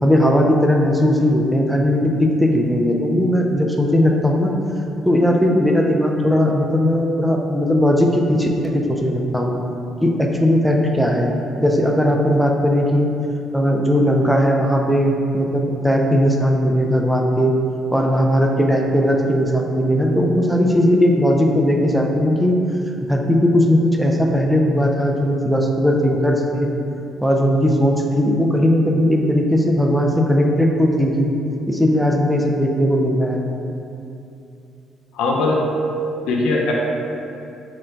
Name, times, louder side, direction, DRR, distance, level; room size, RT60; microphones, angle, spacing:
voice 1, 0.0-4.5 5.1-9.5 10.0-13.1 13.5-17.5 17.9-22.6 23.1-26.7 27.2-31.3 31.7-33.4, equal, ahead, 0 dB, 0.4 m, -18 dB
voice 2, 35.1-35.6 36.3-36.7, left 3 dB, 90° left, -1 dB, 0.6 m, -19 dB
3.8 x 2.1 x 4.4 m, 2.6 s
cardioid pair, 115°, 0 cm